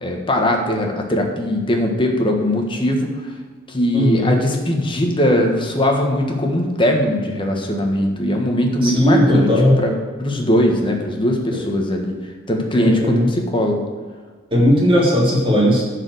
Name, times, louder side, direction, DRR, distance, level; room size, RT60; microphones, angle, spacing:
voice 1, 0.0-3.3 3.7-9.5 9.8-9.9 10.2-12.1 12.5-13.8, left 1 dB, 25° left, 2 dB, 1.5 m, -20 dB
voice 2, 3.9-4.3 8.8-9.8 11.5-11.6 12.8-13.3 14.5-15.8, equal, 25° right, -5 dB, 3.2 m, -16 dB
10.5 x 5.0 x 8.0 m, 1.5 s
head